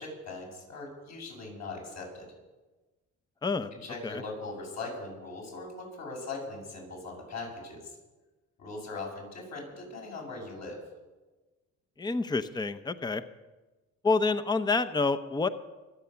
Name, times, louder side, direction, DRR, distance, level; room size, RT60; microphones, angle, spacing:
voice 1, 0.0-2.3 3.7-7.9 8.6-10.8, left 3 dB, 65° left, -1 dB, 7.5 m, -40 dB
voice 2, 12.0-13.2 14.0-15.5, left 3 dB, 15° left, 12 dB, 0.7 m, -28 dB
24.5 x 8.5 x 7.0 m, 1.2 s
cardioid pair, 90°, 30 cm